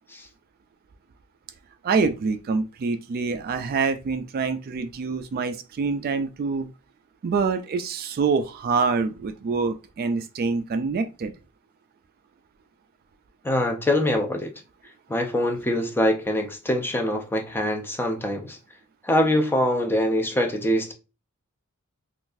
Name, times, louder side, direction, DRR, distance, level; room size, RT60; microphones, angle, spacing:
voice 1, 1.8-6.7 7.2-11.3, right 4 dB, 45° right, 0.3 m, -26 dB
voice 2, 13.4-14.5 15.1-18.6 19.0-20.9, left 1 dB, 10° left, 0.5 m, -24 dB
3.9 x 2.4 x 2.5 m
head